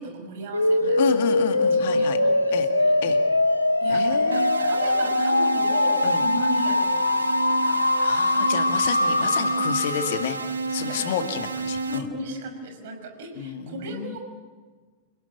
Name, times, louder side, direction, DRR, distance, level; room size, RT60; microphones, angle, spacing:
voice 1, 0.0-1.3 1.9-3.0 3.8-7.9 10.8-11.3 11.8-14.2, right 2 dB, 55° right, 5 dB, 5.9 m, -36 dB
sound 1, 0.5-10.4, left 2 dB, 85° left, 0.9 m, -22 dB
voice 2, 1.0-2.2 2.5-2.7 3.0-3.2 3.9-4.8 6.0-6.2 7.8-10.4 10.7-12.1 13.4-14.2, left 8 dB, 55° left, 7 dB, 2.0 m, -30 dB
sound 2, 4.3-12.0, right 3 dB, 75° right, 1.8 m, -31 dB
29.0 x 17.5 x 9.5 m, 1.5 s
figure-of-eight pair, 90°, 0 cm